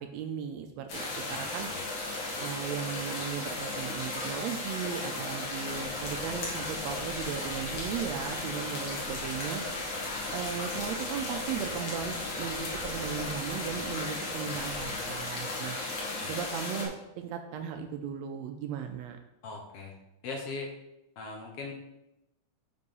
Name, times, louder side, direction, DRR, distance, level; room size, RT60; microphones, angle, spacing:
voice 1, 0.0-1.7 2.4-9.6 10.3-15.8 16.3-19.2, right 8 dB, 80° right, 5 dB, 1.7 m, -36 dB
sound 1, 0.9-16.8, left 2 dB, 50° left, 2.0 m, -35 dB
voice 2, 1.3-1.8 16.2-16.3 19.4-19.9 20.2-20.7 21.2-21.7, left 3 dB, 65° left, 1 dB, 1.7 m, -40 dB
sound 2, 5.7-15.2, left 2 dB, 35° left, 1.8 m, -48 dB
5.5 x 5.4 x 5.4 m, 0.90 s
omnidirectional pair, 3.3 m